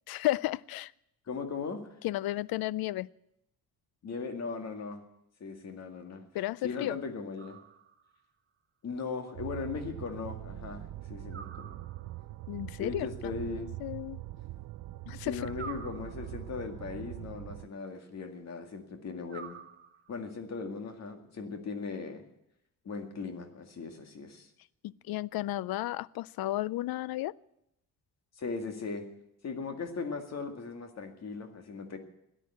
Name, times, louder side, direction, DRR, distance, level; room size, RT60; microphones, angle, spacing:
voice 1, 0.1-0.9 2.0-3.1 6.3-7.0 12.5-13.1 13.8-14.2 15.1-15.4 25.1-27.3, left 16 dB, 80° left, 22 dB, 0.5 m, -33 dB
voice 2, 1.3-1.8 4.0-5.0 5.4-6.2 6.6-7.6 8.8-11.8 12.8-13.7 15.2-19.6 20.1-22.2 22.8-24.5 28.4-29.1 29.4-32.0, left 4 dB, 45° left, 6 dB, 2.0 m, -38 dB
sound 1, 7.4-8.2 11.3-12.3 15.5-16.6 19.3-20.3, right 7 dB, 30° right, 0.9 m, -48 dB
sound 2, 9.3-17.7, right 15 dB, 75° right, 0.5 m, -42 dB
14.0 x 9.9 x 9.2 m, 0.81 s
cardioid pair, 155°, 36 cm